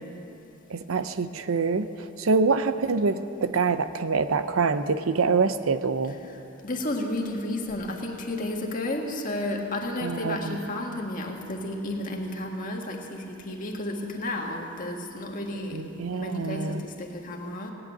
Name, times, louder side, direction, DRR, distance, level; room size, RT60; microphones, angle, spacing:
voice 1, 0.7-6.2 10.0-10.6 15.7-16.8, right 4 dB, 80° right, 12 dB, 0.6 m, -25 dB
voice 2, 6.6-15.8 16.1-17.7, left 1 dB, 40° left, 0 dB, 1.8 m, -32 dB
17.0 x 8.7 x 9.1 m, 2.8 s
head